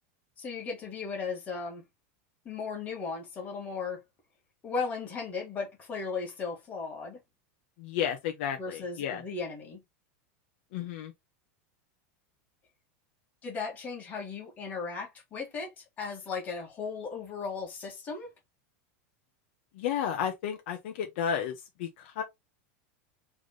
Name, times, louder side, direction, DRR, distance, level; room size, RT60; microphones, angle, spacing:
voice 1, 0.4-1.8 2.5-4.0 4.6-7.2 8.6-9.8 13.4-18.3, left 5 dB, 20° left, 1.8 m, -36 dB
voice 2, 7.8-9.2 10.7-11.1 19.8-21.5 21.8-22.2, left 8 dB, 60° left, 1.1 m, -32 dB
3.6 x 3.3 x 3.9 m
supercardioid pair, 165°, 7 cm